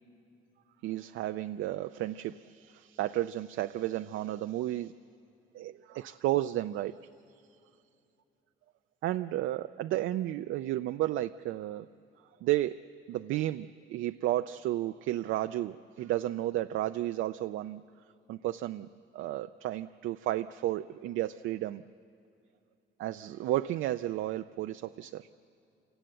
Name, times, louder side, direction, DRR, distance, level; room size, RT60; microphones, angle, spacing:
voice 1, 0.8-4.9 5.5-7.0 9.0-11.9 12.4-12.8 13.1-17.8 18.3-21.8 23.0-25.3, right 14 dB, 80° right, 9 dB, 0.4 m, -32 dB
27.0 x 18.0 x 7.9 m, 2.7 s
cardioid pair, 90°, 20 cm